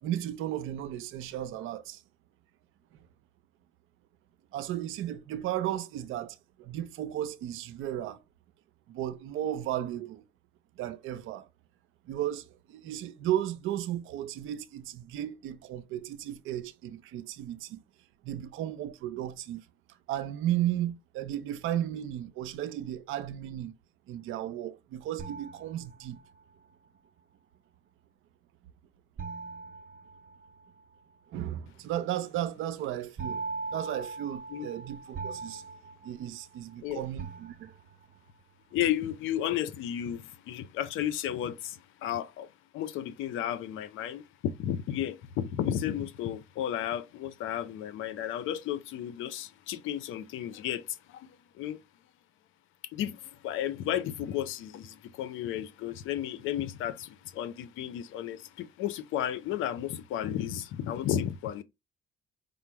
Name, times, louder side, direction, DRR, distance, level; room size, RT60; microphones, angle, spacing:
voice 1, 0.0-2.0 4.5-8.2 8.9-10.2 10.8-11.5 12.1-17.8 18.2-19.7 20.1-23.7 24.1-26.2 31.3-33.4 33.7-35.6 36.0-37.7, right 12 dB, 90° right, 0.5 m, -34 dB
sound 1, 25.2-26.4 29.2-30.8 33.2-36.8 37.2-38.1, right 4 dB, 45° right, 0.7 m, -40 dB
voice 2, 38.7-42.5 42.7-51.8 52.9-61.6, left 11 dB, 90° left, 0.6 m, -33 dB
5.0 x 2.0 x 4.5 m
cardioid pair, 90°, 20 cm